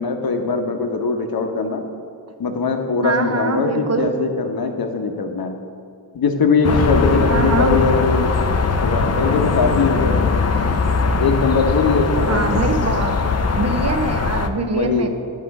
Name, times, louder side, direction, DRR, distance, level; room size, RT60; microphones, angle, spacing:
voice 1, 0.0-1.8 2.4-5.6 6.1-8.3 8.8-10.3 11.2-12.6 14.6-15.1, left 4 dB, 50° left, 5 dB, 1.0 m, -21 dB
voice 2, 3.0-4.1 7.3-7.8 12.3-13.3 13.5-15.1, right 3 dB, 35° right, 6 dB, 0.8 m, -23 dB
sound 1, 6.6-14.5, left 4 dB, 35° left, 0.6 m, -20 dB
9.7 x 3.7 x 5.4 m, 2.4 s
supercardioid pair, 50°, 46 cm